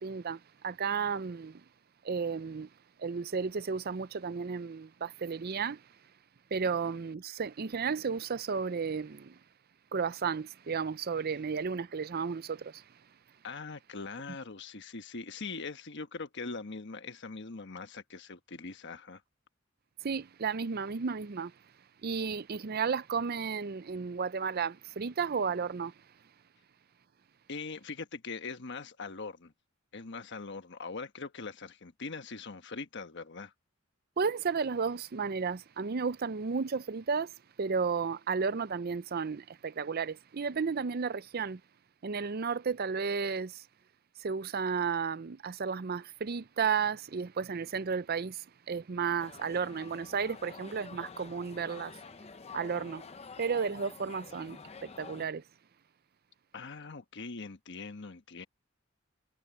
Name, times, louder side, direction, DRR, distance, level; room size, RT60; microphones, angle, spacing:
voice 1, 0.0-1.7 2.0-6.1 6.5-9.4 9.9-13.4 20.0-26.3 34.2-41.6 42.0-43.7 44.2-52.0 52.5-53.1 53.4-55.5, right 5 dB, 45° right, 0.5 m, -33 dB
voice 2, 13.4-19.2 27.5-29.5 29.9-33.5 56.5-58.4, left 4 dB, 55° left, 1.2 m, -42 dB
sound 1, 49.2-55.3, left 4 dB, 30° left, 0.6 m, -48 dB
head